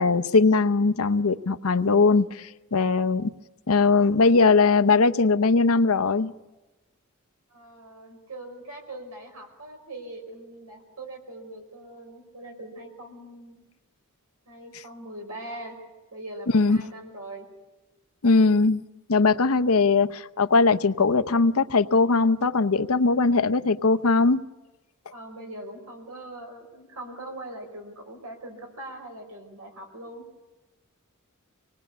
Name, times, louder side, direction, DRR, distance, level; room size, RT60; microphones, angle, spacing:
voice 1, 0.0-3.3 3.7-6.3 16.5-16.8 18.2-18.8 19.1-24.4, left 4 dB, 70° left, 0.8 m, -20 dB
voice 2, 7.5-13.6 14.4-15.8 16.1-17.5 19.5-19.9 25.1-30.2, right 1 dB, 90° right, 5.1 m, -41 dB
25.5 x 19.5 x 8.6 m
head